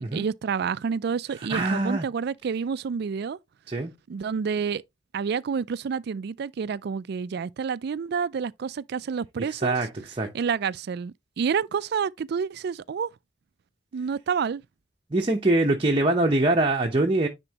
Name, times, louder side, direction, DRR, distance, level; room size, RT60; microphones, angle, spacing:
voice 1, 0.0-3.4 4.1-4.8 5.1-9.8 10.3-13.1 13.9-14.6, right 6 dB, 60° right, 0.4 m, -29 dB
voice 2, 1.5-2.1 3.7-3.9 9.5-9.9 10.2-10.3 15.1-17.3, right 2 dB, 30° right, 0.8 m, -23 dB
9.9 x 4.4 x 2.9 m
head